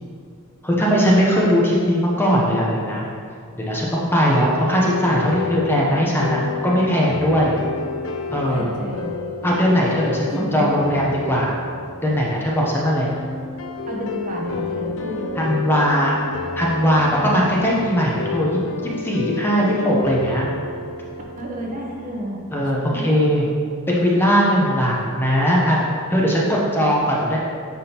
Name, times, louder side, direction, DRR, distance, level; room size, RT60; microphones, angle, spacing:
voice 1, 0.6-3.1 3.5-7.6 8.3-8.7 9.4-11.5 12.0-13.1 15.4-16.2 16.6-20.5 22.5-23.5 23.9-27.4, equal, 10° left, -4 dB, 0.7 m, -19 dB
sound 1, 4.3-22.3, left 5 dB, 60° left, 0.5 m, -31 dB
voice 2, 8.3-9.1 10.0-10.9 13.9-15.4 21.4-23.2 26.4-27.0, equal, 35° right, -1 dB, 0.8 m, -31 dB
9.7 x 3.6 x 2.9 m, 2.3 s
head